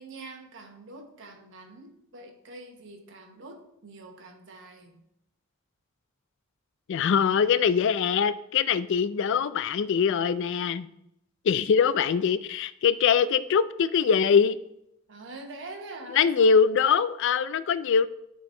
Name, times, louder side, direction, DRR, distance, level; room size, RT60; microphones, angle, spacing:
voice 1, 0.0-5.0 15.1-16.5, right 2 dB, 60° right, 3 dB, 1.1 m, -44 dB
voice 2, 6.9-10.9 11.4-14.6 16.1-18.1, left 6 dB, 60° left, 15 dB, 0.3 m, -23 dB
9.9 x 3.8 x 3.8 m, 0.80 s
head